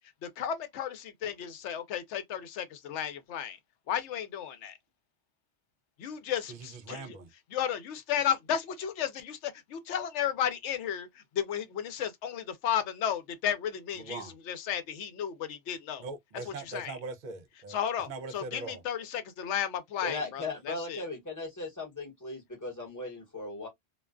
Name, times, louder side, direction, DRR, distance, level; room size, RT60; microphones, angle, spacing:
voice 1, 0.2-3.6 3.9-4.8 6.0-7.2 7.5-16.0 16.5-17.0 17.7-21.0, left 9 dB, 80° left, 0.9 m, -33 dB
voice 2, 6.5-7.3 14.0-14.3 16.0-17.8 18.1-18.8, right 4 dB, 50° right, 0.6 m, -41 dB
voice 3, 20.0-23.7, left 2 dB, 15° left, 1.0 m, -38 dB
2.4 x 2.2 x 2.3 m
omnidirectional pair, 1.2 m